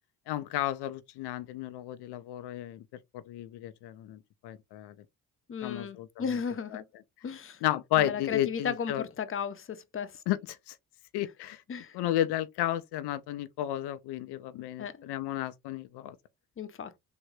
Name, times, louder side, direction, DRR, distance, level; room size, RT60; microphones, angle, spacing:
voice 1, 0.3-2.8 3.1-4.2 4.4-4.9 5.6-6.4 6.7-6.8 7.6-9.0 10.3-10.8 11.1-11.6 11.9-16.1, left 13 dB, 75° left, 0.5 m, -32 dB
voice 2, 5.5-6.8 7.2-7.6 8.0-10.1 11.7-11.9 14.8-14.9 16.6-16.9, left 7 dB, 30° left, 0.7 m, -35 dB
3.6 x 2.1 x 3.1 m
supercardioid pair, 70°, 40 cm